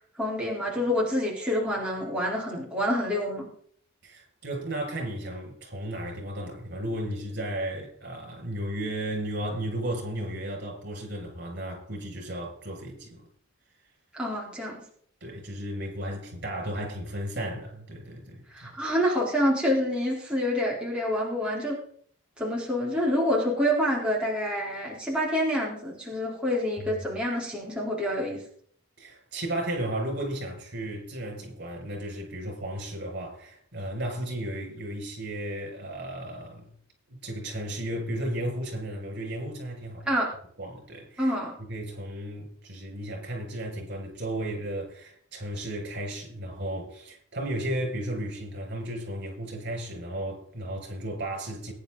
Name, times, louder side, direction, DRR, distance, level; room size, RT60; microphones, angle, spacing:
voice 1, 0.2-3.5 14.1-14.8 18.5-21.8 22.4-28.4 40.0-40.3 41.2-41.5, equal, 5° right, 4.0 m, -27 dB
voice 2, 4.0-13.3 15.2-18.7 29.0-36.7 37.1-40.1 40.6-41.3 41.6-51.7, right 1 dB, 50° right, 6.6 m, -34 dB
22.0 x 10.5 x 4.0 m
head